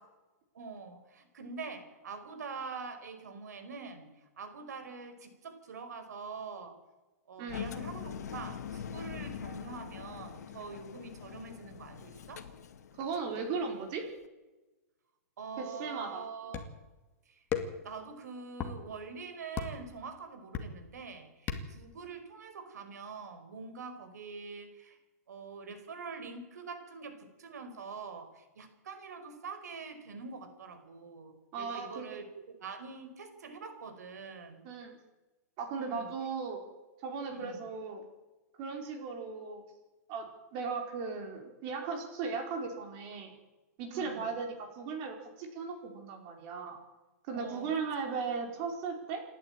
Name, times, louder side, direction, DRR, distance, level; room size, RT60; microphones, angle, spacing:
voice 1, 0.5-6.8 7.3-12.4 15.4-16.6 17.3-17.4 17.8-25.0 25.3-34.7 35.8-36.1 37.3-37.6 43.9-44.3 47.3-47.7, right 4 dB, 85° right, 9 dB, 5.0 m, -44 dB
Engine, 7.5-13.3, left 8 dB, 80° left, 2.2 m, -43 dB
voice 2, 13.0-14.1 15.6-16.2 31.5-32.1 34.6-35.0 35.6-36.6 37.0-38.0 38.6-39.6 40.1-40.3 40.5-43.3 43.8-46.8 47.3-49.2, right 5 dB, 35° right, 4 dB, 4.8 m, -37 dB
sound 1, 16.5-16.9 17.5-17.9 18.5-18.8 19.6-19.9 20.5-20.9 21.5-21.9, left 7 dB, 20° left, 2.2 m, -35 dB
28.0 x 11.5 x 9.0 m, 1.1 s
hypercardioid pair, 160°, 9 cm